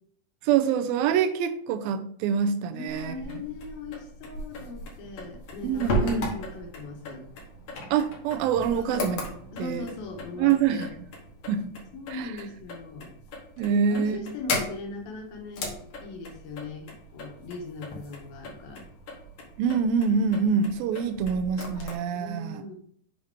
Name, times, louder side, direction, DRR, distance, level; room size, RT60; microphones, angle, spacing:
voice 1, 0.4-3.4 5.6-6.2 7.9-9.3 9.6-9.9 10.4-10.9 11.5-11.8 12.1-12.3 13.6-14.2 19.6-22.6, right 7 dB, 85° right, 8 dB, 2.4 m, -25 dB
voice 2, 2.7-7.3 8.7-9.1 9.5-10.9 11.9-13.1 13.6-15.7 16.0-18.9 22.1-22.8, left 3 dB, 85° left, 2 dB, 3.0 m, -39 dB
sound 1, 2.9-21.9, left 1 dB, 55° left, 1.8 m, -37 dB
7.0 x 5.1 x 3.5 m, 0.62 s
omnidirectional pair, 4.1 m